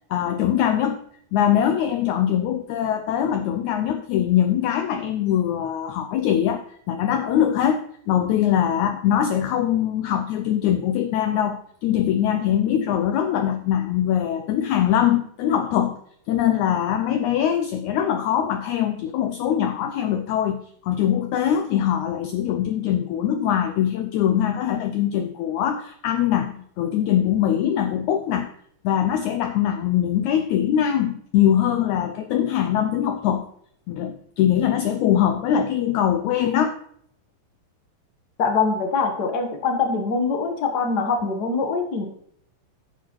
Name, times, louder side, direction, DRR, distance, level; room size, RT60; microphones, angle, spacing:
voice 1, 0.1-1.0 1.3-16.0 16.3-28.5 28.8-33.4 33.9-36.8, left 10 dB, 90° left, 8 dB, 1.6 m, -22 dB
voice 2, 38.4-42.1, left 4 dB, 70° left, 3 dB, 0.9 m, -23 dB
10.5 x 8.1 x 3.1 m, 0.67 s
omnidirectional pair, 4.0 m